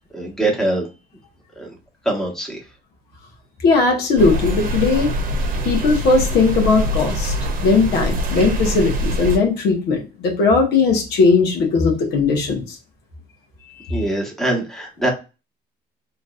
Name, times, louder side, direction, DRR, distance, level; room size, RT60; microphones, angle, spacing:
voice 1, 0.1-0.9 1.6-1.7 2.0-2.6 13.9-15.1, right 1 dB, ahead, -1 dB, 1.3 m, -23 dB
voice 2, 3.6-5.1 5.6-7.3 7.6-12.8, left 4 dB, 75° left, 1 dB, 1.3 m, -18 dB
sound 1, 4.2-9.4, equal, 55° right, 0.9 m, -23 dB
4.0 x 3.1 x 2.5 m, 0.29 s
cardioid pair, 110°, 17 cm